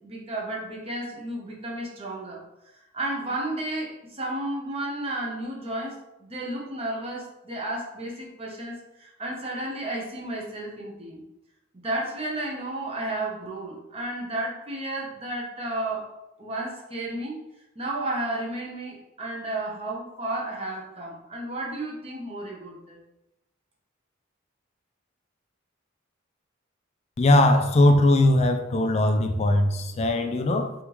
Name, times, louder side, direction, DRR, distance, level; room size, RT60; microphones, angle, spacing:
voice 1, 0.0-2.4 2.9-11.2 11.8-16.1 16.4-17.4 17.7-23.0, right 1 dB, 30° right, -2 dB, 0.9 m, -32 dB
voice 2, 27.2-30.7, left 1 dB, 30° left, 6 dB, 0.4 m, -20 dB
3.5 x 3.5 x 3.0 m, 0.90 s
head